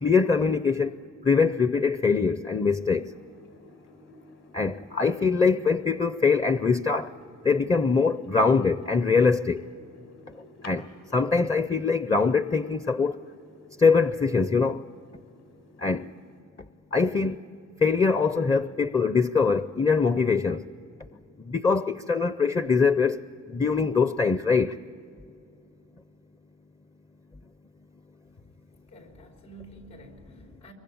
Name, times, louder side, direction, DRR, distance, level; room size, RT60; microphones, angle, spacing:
voice 1, 0.0-1.0 1.2-3.1 4.5-7.1 7.4-9.7 10.6-13.2 13.8-14.9 15.8-16.1 16.9-17.4 17.8-20.6 21.5-24.8, left 4 dB, 15° left, 0.5 m, -23 dB
sound 1, 2.7-16.4, left 2 dB, 60° left, 4.0 m, -54 dB
voice 2, 28.9-30.7, right 1 dB, 85° left, 4.5 m, -49 dB
25.0 x 23.0 x 8.7 m
cardioid pair, 90°, 30 cm